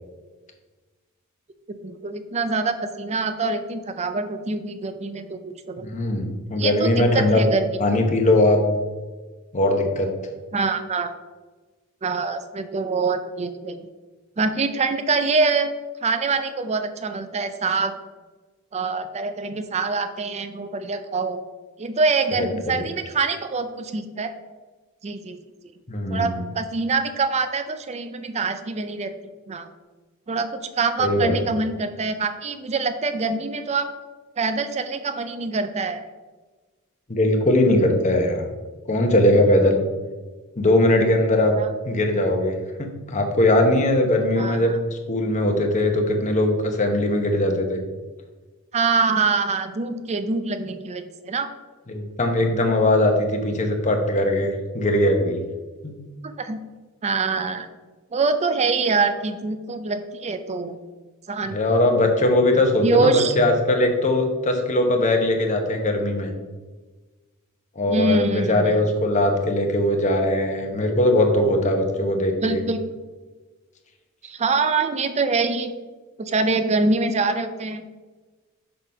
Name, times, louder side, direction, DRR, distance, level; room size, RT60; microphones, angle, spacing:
voice 1, 1.7-5.8 6.5-7.7 10.5-11.1 12.0-13.9 14.4-15.7 16.0-17.9 18.7-21.4 21.8-24.3 25.0-25.4 26.1-29.1 29.5-29.7 30.3-33.9 34.4-36.0 41.6-41.7 44.4-44.8 48.7-51.5 56.4-56.6 57.0-57.7 58.1-60.8 61.3-61.6 62.8-63.4 67.9-68.7 72.4-72.8 74.2-75.7 76.2-77.8, right 4 dB, 30° right, 9 dB, 0.4 m, -24 dB
voice 2, 5.8-7.4 7.8-8.6 9.5-10.1 22.7-22.8 25.9-26.4 31.0-31.3 37.1-38.5 38.9-39.8 40.6-41.6 41.8-47.8 51.9-55.4 55.8-55.9 61.5-66.3 67.8-72.6, left 1 dB, 35° left, 3 dB, 0.9 m, -20 dB
5.7 x 4.0 x 5.2 m, 1.3 s
head